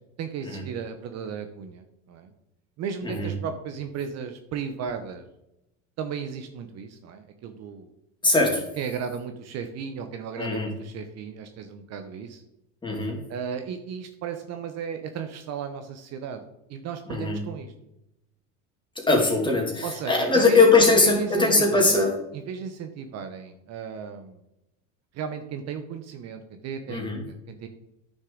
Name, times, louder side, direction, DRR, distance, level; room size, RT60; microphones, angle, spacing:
voice 1, 0.2-2.3 2.8-5.3 6.0-7.9 8.8-12.4 13.3-16.4 16.7-17.7 19.8-22.1 22.3-24.4 25.1-27.0 27.3-27.7, right 7 dB, 45° right, 7 dB, 0.9 m, -35 dB
voice 2, 8.2-8.6 10.4-10.7 12.8-13.2 17.1-17.4 19.0-22.2 26.9-27.2, left 3 dB, 15° left, 0 dB, 2.5 m, -21 dB
9.7 x 6.4 x 3.9 m, 0.87 s
supercardioid pair, 105°, 36 cm